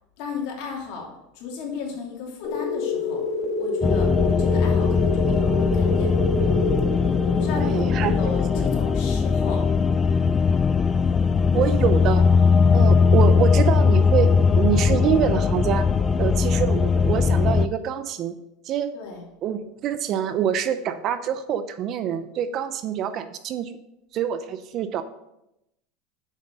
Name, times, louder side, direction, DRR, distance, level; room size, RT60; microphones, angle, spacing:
voice 1, 0.2-1.1 1.3-3.2 3.6-4.1 4.4-6.1 7.2-9.6 18.9-19.3, left 5 dB, 60° left, -2 dB, 2.8 m, -34 dB
sound 1, 2.4-10.8, left 2 dB, 45° left, 1.6 m, -28 dB
sound 2, 3.8-17.7, left 5 dB, 20° left, 0.3 m, -20 dB
voice 2, 7.6-8.2 11.5-12.3 12.7-15.9 16.2-18.4 18.6-18.9 19.4-23.7 24.1-25.0, right 9 dB, 45° right, 11 dB, 0.6 m, -25 dB
7.2 x 5.8 x 5.3 m, 0.86 s
supercardioid pair, 125°, 0 cm